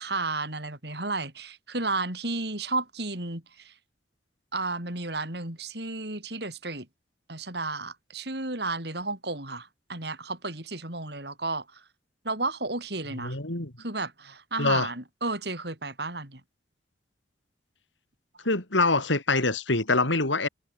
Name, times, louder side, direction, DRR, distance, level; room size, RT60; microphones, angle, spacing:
voice 1, 0.0-3.7 4.5-6.9 7.3-11.8 12.2-13.4 13.8-16.4, right 3 dB, 60° right, 5.7 m, -32 dB
voice 2, 13.2-13.7 14.6-14.9 18.4-20.5, left 3 dB, 90° left, 4.1 m, -24 dB
head